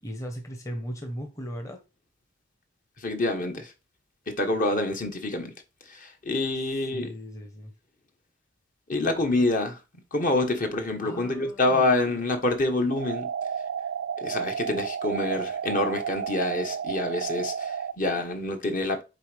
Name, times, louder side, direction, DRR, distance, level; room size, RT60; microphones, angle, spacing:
voice 1, 0.0-1.8 6.9-7.7 11.0-11.9, equal, 15° left, 0.9 m, -37 dB
voice 2, 3.0-3.7 4.3-5.5 5.9-7.1 8.9-9.8 10.1-13.3 14.2-19.0, left 2 dB, 45° left, 1.2 m, -27 dB
sound 1, 12.9-17.9, right 7 dB, 60° right, 0.3 m, -32 dB
6.6 x 4.4 x 3.3 m
head